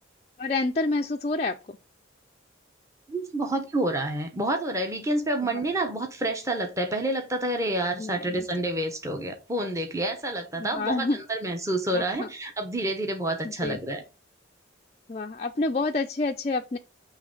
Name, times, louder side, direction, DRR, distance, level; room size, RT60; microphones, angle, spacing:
voice 1, 0.4-1.8 5.4-5.6 8.0-8.5 10.5-11.2 11.9-12.3 13.4-13.8 15.1-16.8, left 3 dB, 35° left, 0.4 m, -28 dB
voice 2, 3.1-14.0, right 1 dB, 15° right, 0.8 m, -28 dB
7.5 x 3.2 x 5.1 m
head